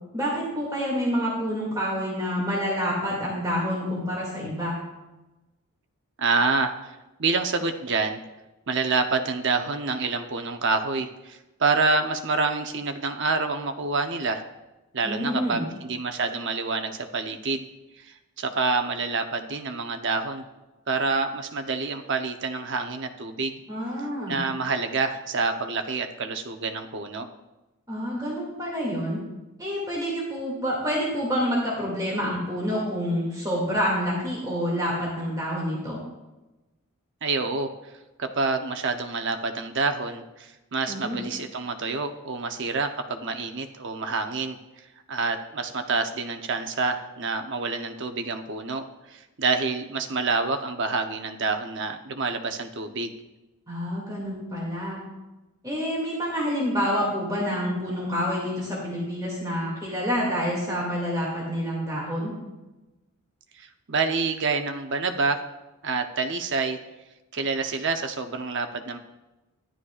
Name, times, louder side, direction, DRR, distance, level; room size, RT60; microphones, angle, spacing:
voice 1, 0.1-4.8 15.0-15.6 23.7-24.4 27.9-29.2 29.6-36.0 40.9-41.2 53.7-55.0 55.6-62.3, equal, 15° right, -5 dB, 2.3 m, -28 dB
voice 2, 6.2-8.2 8.7-14.4 14.9-17.7 18.0-20.4 20.9-23.6 24.3-27.3 37.2-37.7 38.2-44.6 45.1-53.2 63.6-65.4 65.8-66.8 67.3-69.0, right 4 dB, 55° right, 6 dB, 0.8 m, -27 dB
13.5 x 11.5 x 2.4 m, 1.0 s
head